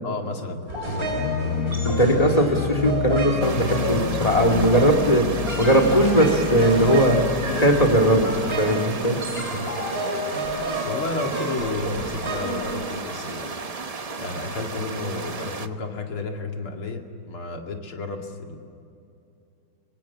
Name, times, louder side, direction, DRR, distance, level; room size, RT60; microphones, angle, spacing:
voice 1, 0.0-1.5 10.8-13.6 14.2-18.6, left 3 dB, 85° left, 2 dB, 3.2 m, -32 dB
sound 1, 0.7-13.4, right 1 dB, 25° right, 4.6 m, -30 dB
sound 2, 1.0-8.7, left 8 dB, 60° left, 0.9 m, -29 dB
voice 2, 1.8-5.3 5.6-7.2 7.5-8.3 8.6-9.2, right 1 dB, 15° left, 5 dB, 2.4 m, -19 dB
sound 3, 3.4-15.7, right 4 dB, 80° right, 0.3 m, -34 dB
24.5 x 24.0 x 7.4 m, 2.6 s
omnidirectional pair, 2.3 m